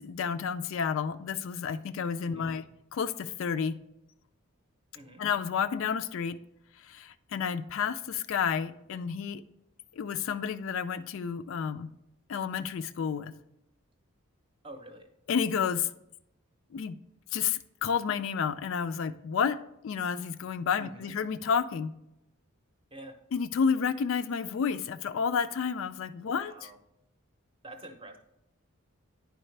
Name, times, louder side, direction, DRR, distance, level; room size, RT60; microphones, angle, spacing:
voice 1, 0.0-3.8 5.2-6.4 6.8-9.4 9.9-11.9 12.3-13.3 15.3-15.9 16.7-16.9 17.3-19.6 19.8-21.9 23.3-26.7, left 6 dB, 60° left, 12 dB, 0.3 m, -30 dB
voice 2, 14.6-15.1 20.8-21.1 22.9-23.2 26.2-26.8 27.6-28.2, right 1 dB, 25° right, 5 dB, 0.7 m, -47 dB
10.0 x 4.8 x 3.2 m, 0.81 s
head